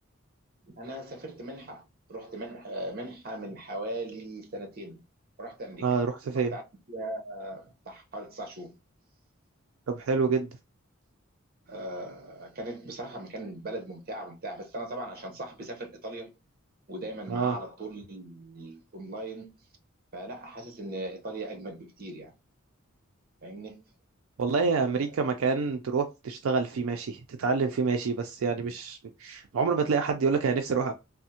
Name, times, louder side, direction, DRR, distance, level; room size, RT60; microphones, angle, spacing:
voice 1, 0.6-1.8 2.1-5.0 5.4-5.9 6.3-6.6 6.9-8.7 11.7-16.3 16.9-19.6 20.1-22.3 23.4-23.9 24.5-24.8, right 1 dB, 45° right, 0.8 m, -39 dB
voice 2, 5.8-6.5 9.9-10.5 17.3-17.6 24.4-30.9, right 5 dB, 75° right, 0.4 m, -27 dB
3.4 x 2.0 x 2.7 m
head